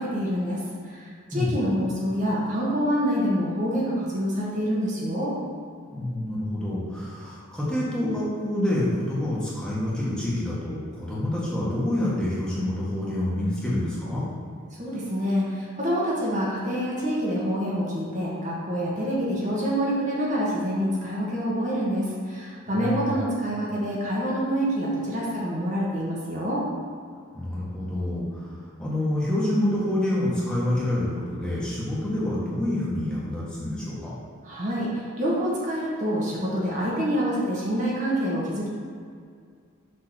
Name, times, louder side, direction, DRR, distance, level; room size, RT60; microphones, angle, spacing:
voice 1, 0.0-5.3 14.8-26.6 34.4-38.7, equal, 35° right, -6 dB, 1.3 m, -26 dB
voice 2, 5.9-14.2 22.7-23.1 27.3-34.1, left 1 dB, 5° left, -8 dB, 1.4 m, -27 dB
6.5 x 3.7 x 6.1 m, 2.2 s
head